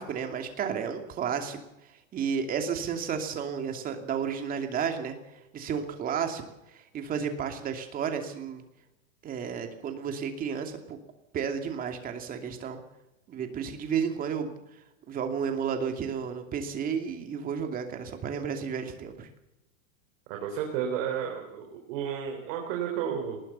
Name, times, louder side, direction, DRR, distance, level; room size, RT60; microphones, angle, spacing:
voice 1, 0.0-1.6 2.1-5.2 5.5-6.4 6.9-8.6 9.2-11.0 11.3-12.8 13.3-14.6 15.1-19.3, right 7 dB, 20° right, 5 dB, 2.7 m, -32 dB
voice 2, 20.3-23.4, right 8 dB, 45° right, 2 dB, 4.0 m, -32 dB
20.0 x 19.0 x 6.9 m, 0.91 s
supercardioid pair, 160°, 40 cm